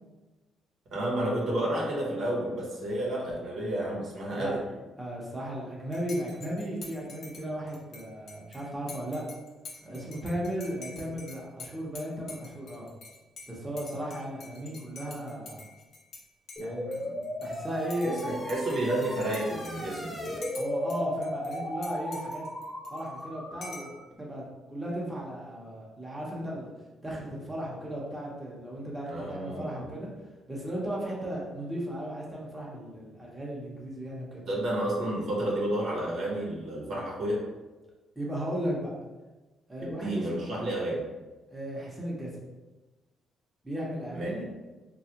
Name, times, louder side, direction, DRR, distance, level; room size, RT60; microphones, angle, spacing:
voice 1, 0.9-4.6 18.0-20.4 29.1-29.9 34.5-37.4 39.8-41.0 44.1-44.3, right 1 dB, 65° right, -3 dB, 0.9 m, -31 dB
voice 2, 5.0-9.2 9.8-12.9 13.5-15.6 16.6-18.1 20.5-22.4 22.9-26.7 27.0-30.1 30.5-34.4 38.2-38.9 39.7-40.5 41.5-42.3 43.6-44.4, equal, 15° right, -5 dB, 0.9 m, -36 dB
Dishes pots and pans / Cutlery silverware / Chink clink, 5.9-16.2 16.5-17.6 17.9-21.0 21.2-23.2 23.6-24.0, left 3 dB, 65° left, 0.7 m, -47 dB
sound 1, 16.6-24.0, left 1 dB, 15° left, 0.6 m, -36 dB
3.2 x 2.4 x 2.8 m, 1.2 s
cardioid pair, 90°, 0 cm